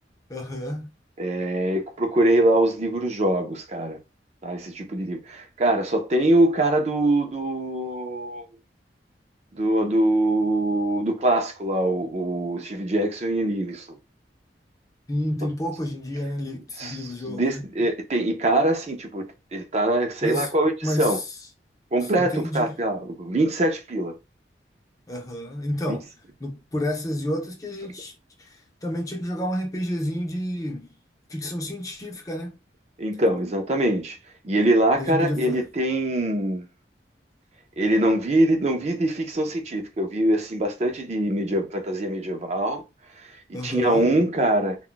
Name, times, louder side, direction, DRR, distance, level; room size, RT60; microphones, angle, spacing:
voice 1, 0.3-0.9 15.1-17.6 20.2-20.5 20.8-21.2 22.2-22.7 25.1-26.1 26.4-28.1 28.4-28.5 28.8-30.9 31.3-32.5 35.0-35.6 43.5-44.1, left 1 dB, 20° left, 0.5 m, -30 dB
voice 2, 1.2-4.0 4.4-8.4 9.5-14.0 16.8-19.2 19.5-21.2 21.9-24.1 25.9-26.0 33.0-34.2 34.4-36.7 37.8-42.8 43.2-43.3 43.6-44.8, right 1 dB, 40° right, 0.5 m, -23 dB
2.2 x 2.1 x 3.7 m
head